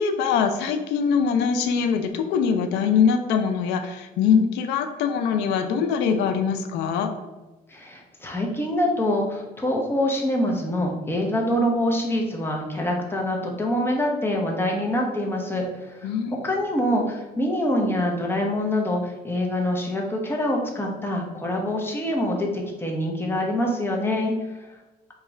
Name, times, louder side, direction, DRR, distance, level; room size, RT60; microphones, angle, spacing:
voice 1, 0.0-7.1 16.0-16.3, left 6 dB, 85° left, 6 dB, 0.4 m, -23 dB
voice 2, 7.7-24.3 24.6-24.7, left 1 dB, 15° left, 0 dB, 0.8 m, -25 dB
4.5 x 2.4 x 3.1 m, 1.1 s
cardioid pair, 110°, 17 cm